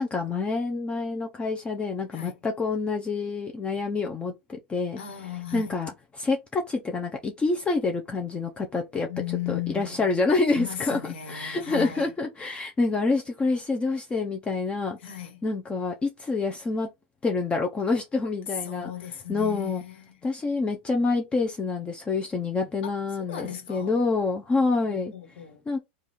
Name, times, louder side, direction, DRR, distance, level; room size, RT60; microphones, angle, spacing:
voice 1, 0.0-5.0 5.5-9.1 9.5-11.0 11.3-15.0 15.4-16.9 17.2-18.9 19.3-19.8 20.2-25.1 25.7-25.8, left 3 dB, 20° left, 0.6 m, -27 dB
voice 2, 5.0-5.8 9.1-10.2 10.5-12.1 15.0-15.4 18.5-20.2 22.8-22.9 23.2-23.9 24.9-25.6, left 11 dB, 75° left, 1.3 m, -36 dB
3.4 x 2.4 x 4.0 m
hypercardioid pair, 115°, 6 cm